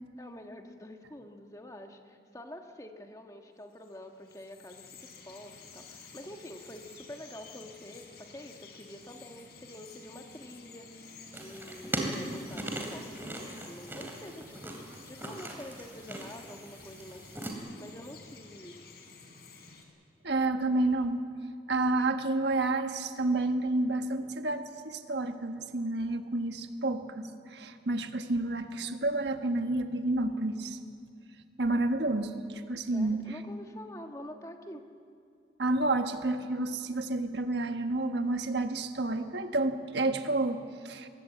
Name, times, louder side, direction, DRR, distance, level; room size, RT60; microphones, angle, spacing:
voice 1, 0.2-14.8 15.0-18.8 32.9-34.8, left 1 dB, 20° left, 4 dB, 1.4 m, -47 dB
Bird vocalization bird call bird song, 3.7-19.8, left 4 dB, 65° left, 3.5 m, -52 dB
sound 1, 11.3-17.5, right 1 dB, 10° right, 2.7 m, -39 dB
voice 2, 20.2-21.2 21.7-30.8 31.6-33.4 35.6-41.1, right 2 dB, 75° right, 7 dB, 1.4 m, -30 dB
22.5 x 19.0 x 8.5 m, 2.4 s
head